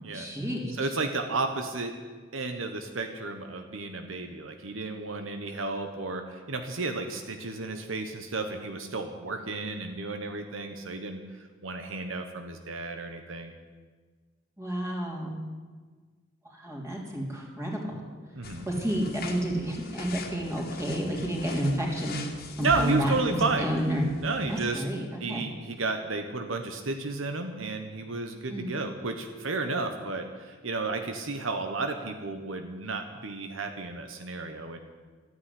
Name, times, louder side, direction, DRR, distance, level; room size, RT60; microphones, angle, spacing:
voice 1, 0.0-0.7 14.6-15.4 16.4-18.0 18.7-22.2 22.6-24.0 24.5-25.4 28.5-28.7, right 1 dB, 15° right, -2 dB, 3.2 m, -30 dB
voice 2, 0.8-1.9 2.3-13.5 18.3-18.7 22.6-23.7 24.2-24.8 25.2-34.8, right 3 dB, 80° right, 6 dB, 1.3 m, -32 dB
sound 1, 18.4-24.7, left 3 dB, 50° left, 1.8 m, -43 dB
13.0 x 9.6 x 9.8 m, 1.4 s
head